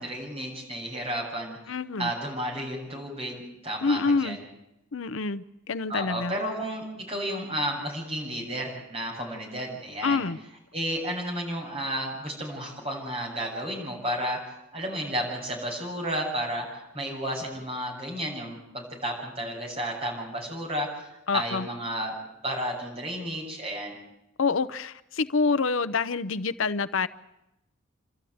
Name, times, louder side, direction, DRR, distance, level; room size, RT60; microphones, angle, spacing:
voice 1, 0.0-1.7 2.0-4.4 5.9-10.3 10.7-22.2 22.4-24.0, equal, 30° right, -1 dB, 7.3 m, -32 dB
voice 2, 1.7-2.1 3.8-4.4 4.9-6.3 10.0-10.4 21.3-21.7 24.4-27.1, left 4 dB, 70° left, 14 dB, 0.7 m, -27 dB
28.0 x 13.5 x 9.3 m, 0.88 s
head